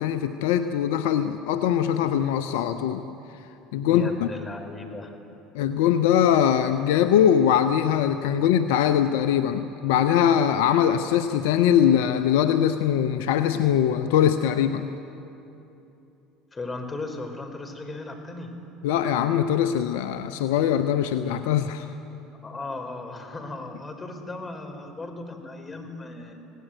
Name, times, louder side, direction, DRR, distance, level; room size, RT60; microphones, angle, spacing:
voice 1, 0.0-3.0 3.3-4.3 5.5-14.9 18.8-21.9, left 9 dB, 70° left, 11 dB, 0.9 m, -22 dB
voice 2, 3.9-5.1 16.5-18.5 22.4-26.3, left 2 dB, 25° left, 5 dB, 4.9 m, -36 dB
26.5 x 18.0 x 9.4 m, 2.9 s
hypercardioid pair, 70°, 0 cm